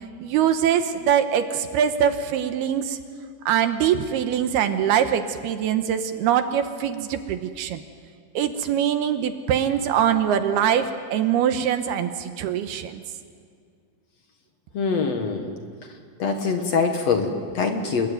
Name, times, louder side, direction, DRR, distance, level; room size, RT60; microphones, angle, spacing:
voice 1, 0.2-3.0 3.5-7.8 8.3-13.0, right 9 dB, 75° right, 8 dB, 2.8 m, -23 dB
voice 2, 14.7-15.5 16.2-18.1, left 5 dB, 65° left, 5 dB, 1.6 m, -24 dB
28.0 x 22.0 x 9.4 m, 2.1 s
omnidirectional pair, 5.1 m